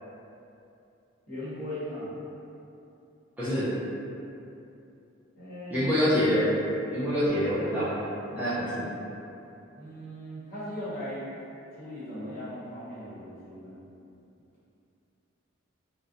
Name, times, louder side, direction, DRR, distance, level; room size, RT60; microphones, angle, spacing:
voice 1, 1.3-2.1 5.4-5.9 8.3-8.6 9.7-11.3 11.7-13.8, equal, 45° left, -12 dB, 0.9 m, -38 dB
voice 2, 3.4-3.7 5.7-6.6 6.9-7.9 8.4-8.9, equal, 10° right, -13 dB, 0.4 m, -25 dB
2.4 x 2.0 x 2.5 m, 2.7 s
head